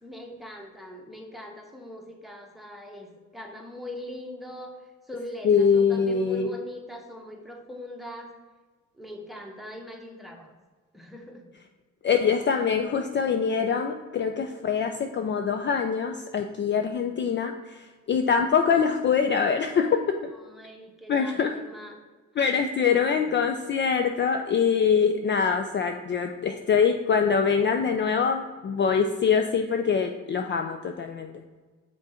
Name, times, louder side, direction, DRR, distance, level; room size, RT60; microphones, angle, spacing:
voice 1, 0.0-4.8 5.1-8.3 8.9-10.5 10.9-11.4 20.3-22.0 22.9-23.3, left 1 dB, ahead, 1 dB, 1.1 m, -41 dB
voice 2, 5.4-6.5 12.0-20.3 21.1-21.5 22.4-31.3, left 6 dB, 40° left, 6 dB, 0.4 m, -24 dB
5.9 x 3.8 x 4.3 m, 1.4 s
cardioid pair, 90°, 30 cm